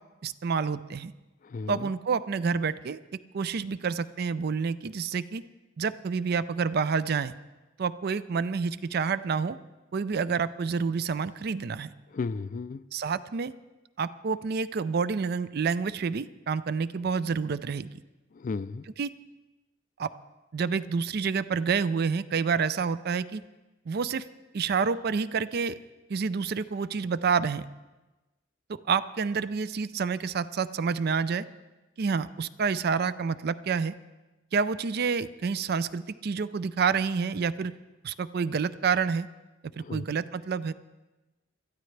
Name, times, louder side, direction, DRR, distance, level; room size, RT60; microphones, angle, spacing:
voice 1, 0.2-1.1 1.7-3.0 3.3-5.4 5.8-7.3 7.8-9.6 9.9-11.9 12.9-13.5 14.0-17.9 19.0-19.1 20.0-20.1 20.5-23.4 23.9-24.2 24.5-25.8 26.1-27.6 28.7-31.5 32.0-33.9 34.5-37.7 38.0-39.3 39.8-40.7, right 5 dB, 55° right, 16 dB, 0.4 m, -28 dB
voice 2, 1.4-1.9 12.1-12.8 18.4-18.8 39.8-40.0, left 4 dB, 45° left, 16 dB, 0.4 m, -34 dB
22.0 x 13.5 x 3.3 m, 1.1 s
head